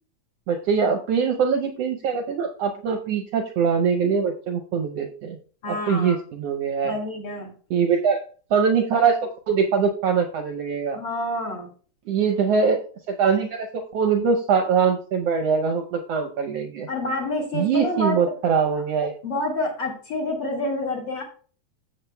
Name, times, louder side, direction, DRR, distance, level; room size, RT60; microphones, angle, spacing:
voice 1, 0.5-5.4 5.7-6.9 7.7-8.2 8.5-9.2 9.5-11.0 12.1-12.8 13.1-16.9 17.5-19.1, right 6 dB, 70° right, 5 dB, 1.6 m, -22 dB
voice 2, 5.6-6.1 6.8-7.5 10.9-11.7 16.9-18.2 19.2-21.2, left 2 dB, 45° left, -1 dB, 2.4 m, -28 dB
14.0 x 7.3 x 2.2 m, 0.42 s
omnidirectional pair, 3.5 m